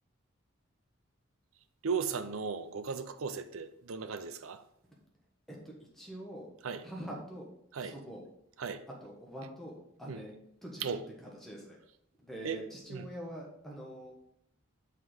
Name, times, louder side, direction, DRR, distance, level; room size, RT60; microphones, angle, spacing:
voice 1, 1.8-4.6 6.6-6.9 7.7-8.0 8.6-8.8 10.1-10.2 10.8-11.1 12.4-12.6 12.9-13.1, right 5 dB, 85° right, 0.6 m, -36 dB
voice 2, 5.5-6.5 6.8-7.5 7.8-8.2 9.0-10.3 10.6-11.0 11.4-11.8 12.2-14.1, equal, ahead, 1.2 m, -44 dB
5.5 x 4.7 x 6.3 m
head